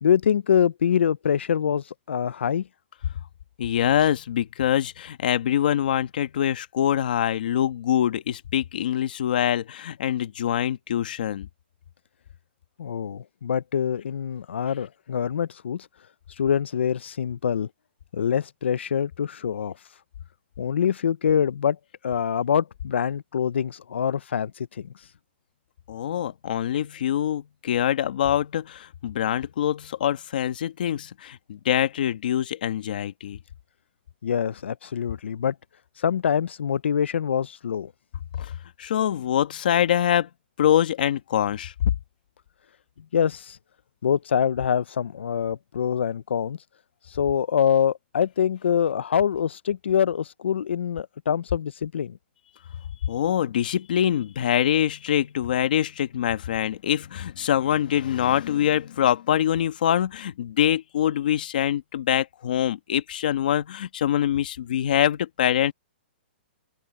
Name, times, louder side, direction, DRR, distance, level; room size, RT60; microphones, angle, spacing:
voice 1, 0.0-2.7 12.8-15.9 16.4-17.7 18.1-19.8 20.6-21.8 22.0-24.9 34.2-35.6 36.0-37.9 43.1-43.6 44.0-46.6 47.1-52.2, left 8 dB, 85° left, 0.6 m, -25 dB
voice 2, 3.6-11.5 25.9-33.4 38.4-38.5 38.8-40.3 40.6-41.9 53.1-65.7, left 10 dB, 50° left, 1.4 m, -24 dB
open air
hypercardioid pair, 175°, 6 cm